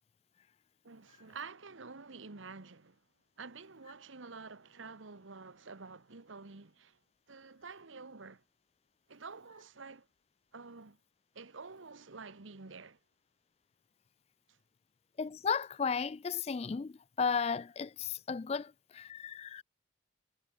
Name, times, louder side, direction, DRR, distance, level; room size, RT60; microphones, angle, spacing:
voice 1, 0.8-3.0 3.4-7.0 7.3-8.4 9.1-10.1 10.5-11.0 11.3-13.0, right 4 dB, 90° right, 1.3 m, -49 dB
voice 2, 15.2-19.6, left 6 dB, 30° left, 0.3 m, -34 dB
head